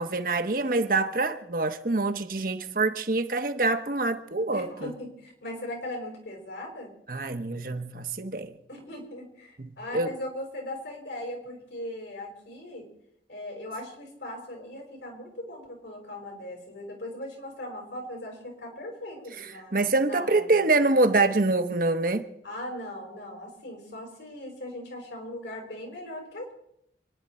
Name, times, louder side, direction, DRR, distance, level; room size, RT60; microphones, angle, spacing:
voice 1, 0.0-4.9 7.1-8.6 9.6-10.1 19.4-22.3, right 2 dB, 50° right, 1.1 m, -25 dB
voice 2, 4.5-6.9 8.7-12.9 13.3-19.8 20.0-20.6 22.4-26.5, left 1 dB, 80° left, 5.1 m, -39 dB
28.0 x 10.5 x 4.3 m
head